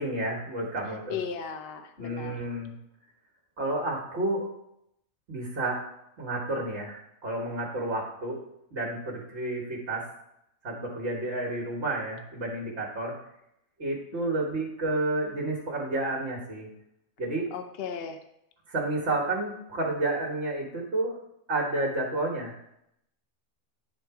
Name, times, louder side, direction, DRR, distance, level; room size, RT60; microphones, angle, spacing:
voice 1, 0.0-1.2 2.0-2.7 3.6-4.5 5.3-5.8 6.2-8.4 8.7-10.1 10.6-13.2 13.8-16.7 17.2-17.5 18.7-21.2 21.5-22.6, right 2 dB, 55° right, -1 dB, 1.5 m, -30 dB
voice 2, 1.1-2.3 14.1-14.3 17.5-18.2, left 6 dB, 55° left, 7 dB, 0.7 m, -36 dB
9.8 x 3.9 x 4.6 m, 0.79 s
omnidirectional pair, 1.4 m